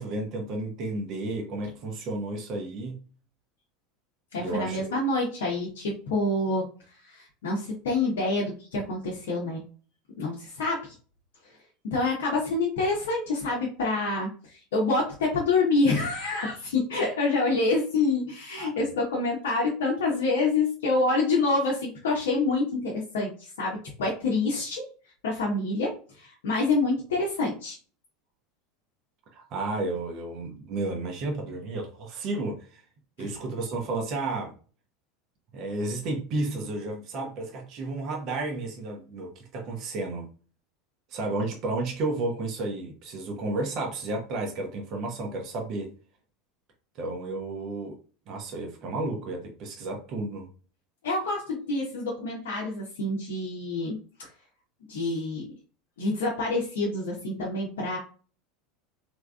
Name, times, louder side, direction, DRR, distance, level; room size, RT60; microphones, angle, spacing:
voice 1, 0.0-3.0 4.4-5.0 18.6-18.7 29.3-32.8 33.2-34.5 35.5-40.3 41.1-45.9 47.0-48.0 48.3-50.5, right 2 dB, 50° right, 1.0 m, -32 dB
voice 2, 4.3-9.6 10.2-11.0 11.8-24.8 25.2-27.8 33.2-33.3 51.0-54.3 54.9-55.5 56.0-58.0, left 3 dB, 70° left, 0.9 m, -27 dB
3.5 x 3.0 x 2.3 m
hypercardioid pair, 80°, 0 cm